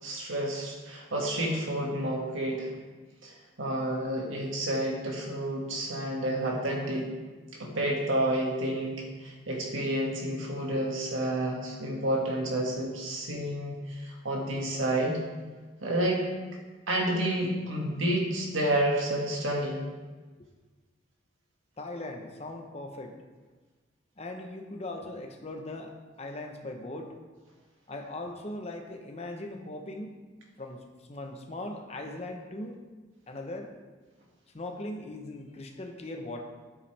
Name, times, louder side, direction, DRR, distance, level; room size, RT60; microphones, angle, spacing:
voice 1, 0.0-2.7 3.2-7.1 7.5-15.2 15.8-16.3 16.9-19.8, right 1 dB, 85° right, -1 dB, 1.9 m, -30 dB
voice 2, 21.8-23.2 24.2-25.9 26.2-27.1 27.9-30.2 30.6-32.8 33.3-33.7 34.5-36.4, left 2 dB, 35° left, 3 dB, 0.9 m, -39 dB
9.8 x 8.3 x 3.4 m, 1.3 s
head